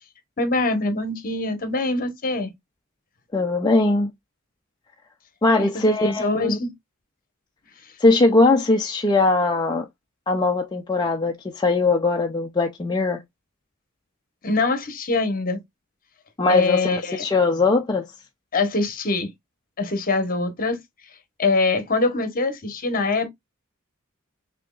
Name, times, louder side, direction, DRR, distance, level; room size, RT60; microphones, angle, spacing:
voice 1, 0.4-2.5 5.9-6.7 14.4-15.6 16.5-17.2 18.5-19.3 19.8-20.8 21.4-23.3, left 3 dB, 40° left, 1.1 m, -23 dB
voice 2, 3.3-4.1 5.4-6.6 8.0-9.8 10.3-13.2 16.4-18.1, left 3 dB, 20° left, 0.5 m, -20 dB
6.0 x 2.9 x 2.3 m
head